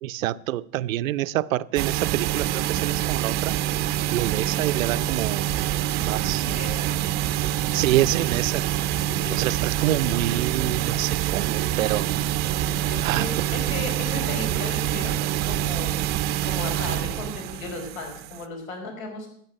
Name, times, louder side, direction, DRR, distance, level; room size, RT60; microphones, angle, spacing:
voice 1, 0.0-3.6 4.1-5.6 6.1-6.5 7.7-8.6 9.3-12.1 13.0-13.4, right 14 dB, 80° right, 16 dB, 0.6 m, -27 dB
sound 1, 1.8-18.4, right 12 dB, 25° right, 0.5 m, -26 dB
voice 2, 6.3-6.9 9.0-9.4 12.9-19.3, left 3 dB, 85° left, 3 dB, 4.9 m, -36 dB
13.5 x 9.1 x 6.4 m, 0.68 s
supercardioid pair, 140°, 39 cm